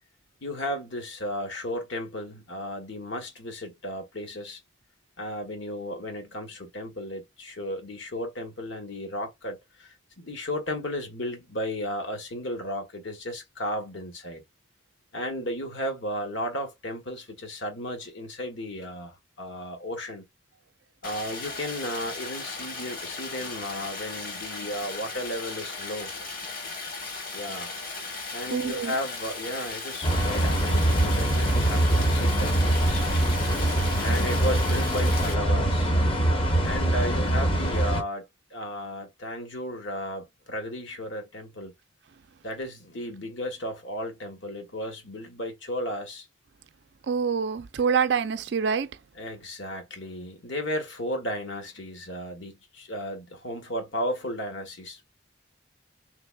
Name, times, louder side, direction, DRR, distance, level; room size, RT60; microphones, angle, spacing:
voice 1, 0.4-4.6 5.2-14.4 15.1-20.2 21.0-26.2 27.3-27.7 28.3-33.0 34.0-35.9 36.6-38.2 38.5-41.7 42.4-46.3 49.2-55.1, equal, 70° left, 1.2 m, -34 dB
Stream, 21.0-35.3, left 3 dB, 45° left, 1.1 m, -36 dB
voice 2, 28.5-28.9 32.9-34.1 47.1-48.9, right 6 dB, 60° right, 0.4 m, -27 dB
sound 1, 30.0-38.0, right 1 dB, 25° left, 0.7 m, -23 dB
3.3 x 3.3 x 2.2 m
head